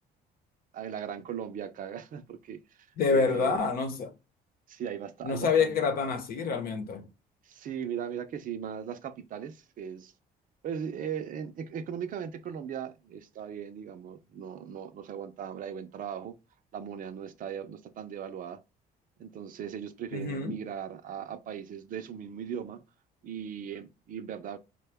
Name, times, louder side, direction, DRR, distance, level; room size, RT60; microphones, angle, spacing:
voice 1, 0.7-3.6 4.7-5.8 7.4-10.1 10.6-16.3 16.7-18.6 19.2-22.8 23.2-24.6, right 8 dB, 55° right, 0.6 m, -38 dB
voice 2, 3.0-4.1 5.2-7.1 20.1-20.5, left 5 dB, 60° left, 0.9 m, -27 dB
4.6 x 2.2 x 3.4 m
cardioid pair, 110°, 17 cm